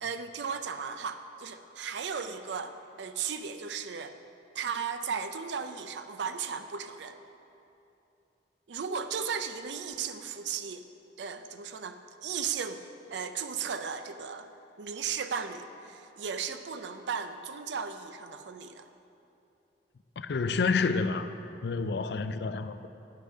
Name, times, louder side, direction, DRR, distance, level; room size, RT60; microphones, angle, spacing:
voice 1, 0.0-4.2 4.5-7.2 8.7-10.8 11.2-12.8 13.1-14.5 14.8-18.9, right 6 dB, 75° right, 9 dB, 0.5 m, -36 dB
voice 2, 20.2-21.3 21.6-22.9, left 4 dB, 65° left, 11 dB, 0.4 m, -29 dB
9.7 x 6.8 x 5.4 m, 2.8 s
head